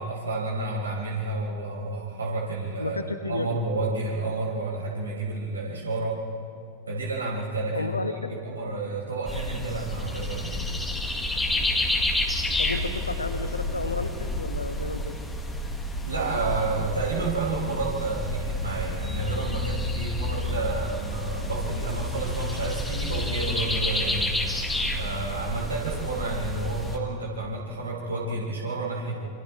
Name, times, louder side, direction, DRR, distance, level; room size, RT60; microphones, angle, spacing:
voice 1, 0.0-6.2 6.9-10.7 16.0-24.4 24.9-29.3, right 3 dB, 75° right, -4 dB, 6.4 m, -30 dB
voice 2, 2.8-3.6 7.7-8.3 12.6-15.1 24.2-24.3 29.1-29.3, left 3 dB, 80° left, 8 dB, 1.4 m, -32 dB
sound 1, 9.3-27.0, left 1 dB, 5° left, 2.1 m, -30 dB
28.5 x 27.0 x 3.5 m, 2.4 s
figure-of-eight pair, 90°, 0 cm